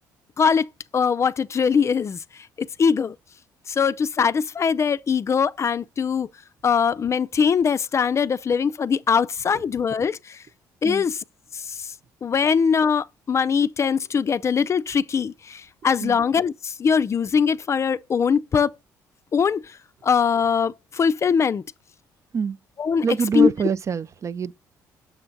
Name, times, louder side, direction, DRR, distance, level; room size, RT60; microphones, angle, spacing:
voice 1, 0.4-0.7 0.9-2.2 2.8-3.2 3.7-6.3 6.6-10.4 10.8-11.1 12.2-18.7 19.3-19.6 20.0-21.6 22.8-23.0 23.3-23.5, left 6 dB, 35° left, 0.4 m, -21 dB
voice 2, 23.0-24.5, right 6 dB, 40° right, 0.4 m, -25 dB
7.0 x 4.4 x 3.9 m
supercardioid pair, 70°, 8 cm